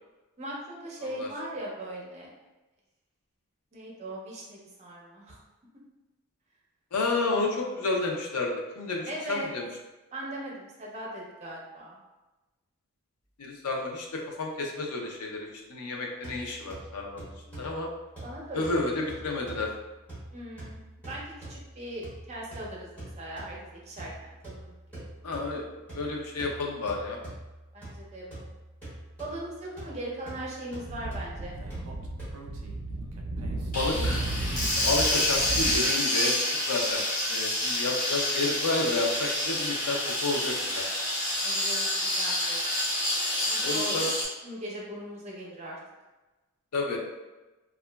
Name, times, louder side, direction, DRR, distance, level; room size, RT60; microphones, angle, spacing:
voice 1, 0.4-2.3 3.7-5.4 9.1-9.5 10.1-12.0 18.2-18.8 20.3-21.2 21.5-25.1 27.7-28.5 29.2-31.6 41.4-42.6 43.4-44.0 44.4-45.8, right 1 dB, 30° right, -3 dB, 0.5 m, -39 dB
voice 2, 6.9-9.7 13.4-17.9 18.5-19.7 25.2-27.2 33.7-34.2 34.8-37.0 37.3-40.9 43.6-44.1 46.7-47.0, left 3 dB, 90° left, 0 dB, 0.5 m, -31 dB
sound 1, 16.2-32.4, right 1 dB, 5° left, 0.9 m, -45 dB
Speech / Wind, 30.8-35.8, right 2 dB, 80° right, 0.4 m, -34 dB
sound 2, 33.7-44.2, left 1 dB, 35° left, 0.7 m, -28 dB
2.8 x 2.3 x 2.2 m, 1.1 s
head